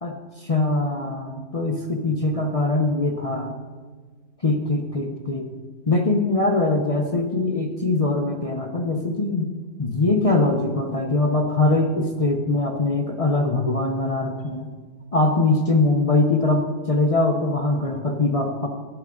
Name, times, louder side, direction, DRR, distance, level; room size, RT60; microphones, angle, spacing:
voice 1, 0.0-3.6 4.4-5.5 5.9-9.5 9.8-14.7 15.1-18.7, left 2 dB, 35° left, 2 dB, 0.7 m, -22 dB
12.0 x 8.8 x 3.8 m, 1.4 s
omnidirectional pair, 1.3 m